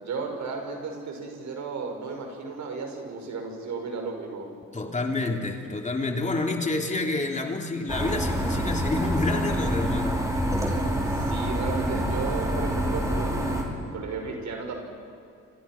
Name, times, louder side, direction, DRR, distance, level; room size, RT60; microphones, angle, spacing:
voice 1, 0.0-4.5 11.1-14.8, right 4 dB, 70° right, 3 dB, 5.9 m, -34 dB
voice 2, 4.7-10.2, left 2 dB, 25° left, 2 dB, 3.3 m, -28 dB
sound 1, 7.9-13.6, equal, 10° right, 5.3 m, -27 dB
29.5 x 27.0 x 6.1 m, 2.4 s
cardioid pair, 90°, 30 cm